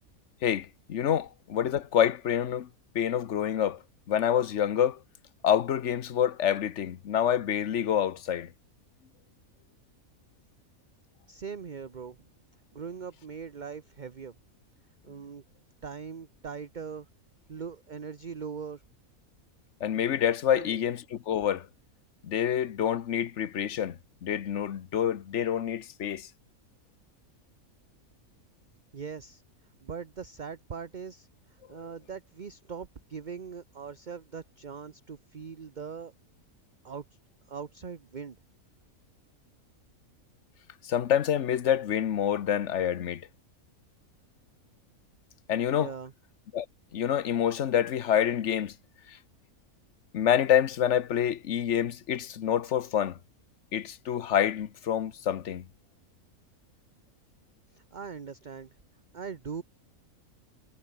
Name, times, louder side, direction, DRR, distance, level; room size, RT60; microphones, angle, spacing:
voice 1, 0.4-2.7 2.9-3.8 4.1-5.0 5.4-8.5 19.8-21.7 22.2-26.3 40.8-43.2 45.5-45.9 46.5-46.7 46.9-48.7 50.1-53.2 53.7-55.6, left 9 dB, 55° left, 1.2 m, -27 dB
voice 2, 11.3-12.2 12.7-14.4 15.0-15.4 15.8-17.1 17.5-18.8 20.5-20.7 28.9-29.4 29.8-31.3 31.7-36.1 36.8-37.0 37.5-38.4 45.7-46.1 57.9-58.7 59.1-59.6, right 6 dB, 35° right, 1.0 m, -40 dB
omnidirectional pair, 1.5 m